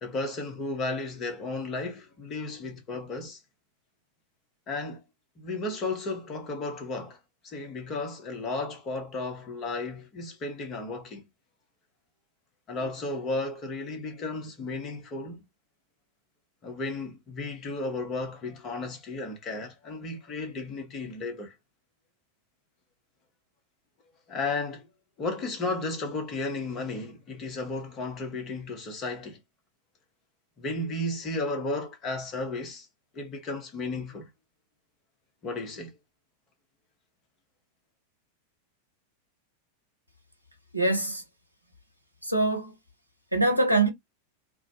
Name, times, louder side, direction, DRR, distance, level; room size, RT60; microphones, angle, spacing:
voice 1, 0.0-3.4 4.7-5.0 5.4-7.2 7.4-11.2 12.7-15.4 16.6-21.5 24.3-24.9 25.2-29.4 30.6-32.9 33.1-34.3 35.4-35.9, left 2 dB, 30° left, 0.8 m, -34 dB
voice 2, 40.7-41.2 42.2-42.7 43.3-43.9, right 2 dB, 90° right, 0.6 m, -24 dB
2.2 x 2.0 x 2.7 m
figure-of-eight pair, 90°, 0 cm